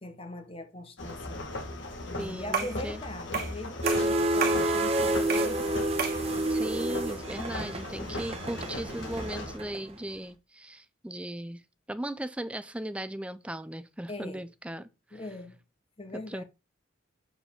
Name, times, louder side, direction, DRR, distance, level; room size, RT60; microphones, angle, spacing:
voice 1, 0.0-1.5 2.0-5.8 14.1-14.4 15.1-15.6 16.0-16.4, left 2 dB, 30° left, 1.0 m, -41 dB
sound 1, 1.0-9.6, left 2 dB, 70° left, 1.7 m, -38 dB
voice 2, 2.2-3.0 6.5-11.6 11.9-15.2 16.3-16.4, right 1 dB, 5° right, 0.4 m, -37 dB
sound 2, 2.5-2.8 3.3-3.6 3.9-4.7 5.3-5.5 6.0-6.2, right 6 dB, 45° right, 1.4 m, -31 dB
sound 3, 3.8-10.2, right 1 dB, 30° right, 1.0 m, -29 dB
7.2 x 4.8 x 3.5 m
head